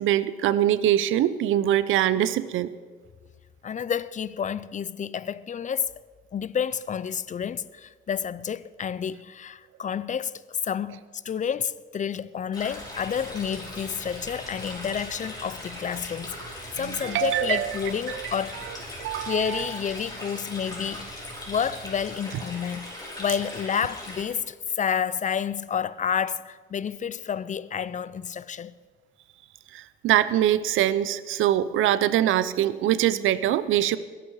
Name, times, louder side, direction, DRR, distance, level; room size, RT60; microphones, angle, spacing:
voice 1, 0.0-2.7 16.8-17.7 18.1-18.3 19.0-19.6 29.7-34.0, right 12 dB, 85° right, 0.7 m, -23 dB
voice 2, 3.6-5.9 6.3-21.1 21.5-22.9 23.2-28.7, left 7 dB, 40° left, 0.5 m, -30 dB
Stream, 12.5-24.2, left 1 dB, 20° left, 5.6 m, -39 dB
sound 1, 12.8-22.2, right 3 dB, 25° right, 5.0 m, -48 dB
20.0 x 11.0 x 4.7 m
cardioid pair, 90°, 20 cm